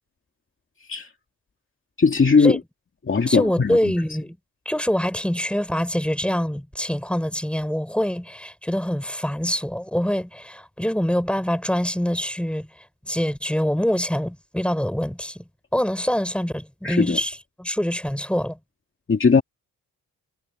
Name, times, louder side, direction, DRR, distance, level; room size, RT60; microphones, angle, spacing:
voice 1, 2.0-2.6 3.1-3.9 16.8-17.2 19.1-19.4, left 5 dB, 35° left, 2.4 m, -18 dB
voice 2, 3.3-4.4 4.7-12.7 13.0-15.4 15.7-18.6, equal, 5° left, 5.8 m, -25 dB
cardioid pair, 105°, 34 cm